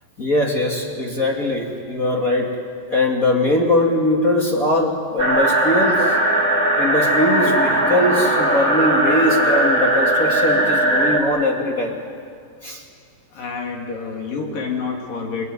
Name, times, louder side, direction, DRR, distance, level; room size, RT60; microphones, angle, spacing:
voice 1, 0.2-2.6 2.9-6.2 6.7-12.0 12.6-12.8, left 1 dB, 30° left, 1 dB, 1.6 m, -21 dB
sound 1, 5.2-11.2, right 1 dB, 20° right, 2.7 m, -18 dB
voice 2, 13.4-15.4, left 5 dB, 55° left, 1 dB, 4.2 m, -28 dB
28.0 x 22.5 x 9.5 m, 2.3 s
omnidirectional pair, 5.1 m